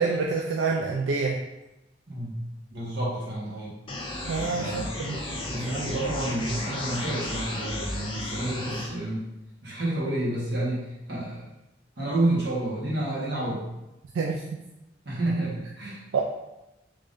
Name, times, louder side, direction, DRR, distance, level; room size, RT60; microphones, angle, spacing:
voice 1, 0.0-1.4 4.3-5.2 14.1-14.4 16.1-16.2, right 4 dB, 85° right, 0 dB, 0.4 m, -27 dB
voice 2, 2.7-3.7 4.5-4.9 5.5-9.3 9.6-11.5 12.0-13.6 15.0-16.0, right 1 dB, 60° right, -6 dB, 1.4 m, -29 dB
sound 1, 3.9-8.9, left 1 dB, 30° left, 0.5 m, -34 dB
3.6 x 3.4 x 2.6 m, 0.96 s
head